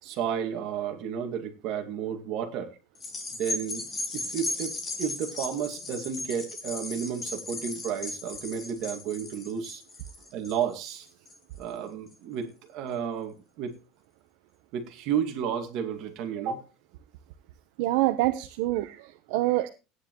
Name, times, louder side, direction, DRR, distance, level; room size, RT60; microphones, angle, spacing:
voice 1, 0.0-2.8 3.4-9.8 10.3-11.1 11.6-13.7 14.7-16.7, right 8 dB, 55° right, 2.2 m, -32 dB
sound 1, 3.0-11.6 12.1-12.2, left 2 dB, 20° left, 2.6 m, -36 dB
voice 2, 17.8-19.7, right 17 dB, 75° right, 0.9 m, -26 dB
16.5 x 9.9 x 3.1 m
cardioid pair, 150°, 0 cm